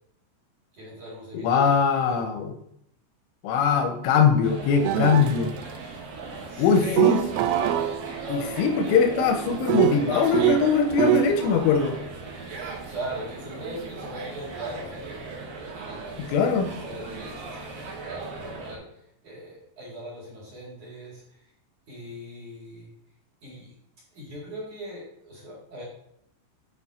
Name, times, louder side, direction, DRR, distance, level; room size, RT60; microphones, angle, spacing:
voice 1, 0.8-1.7 6.3-7.0 7.3-7.7 12.9-16.2 16.8-18.9 19.2-21.4 21.9-22.9 23.4-23.7 24.1-25.8, right 1 dB, 50° right, -6 dB, 2.6 m, -40 dB
voice 2, 1.4-2.5 3.4-5.5 6.6-7.2 8.3-12.0 16.3-16.7, left 6 dB, 85° left, 5 dB, 3.0 m, -21 dB
sound 1, 4.4-18.8, right 3 dB, 70° right, 2.2 m, -38 dB
sound 2, 4.9-5.4 6.8-11.4, right 13 dB, 85° right, 3.1 m, -25 dB
9.4 x 4.7 x 4.2 m, 0.71 s
omnidirectional pair, 5.8 m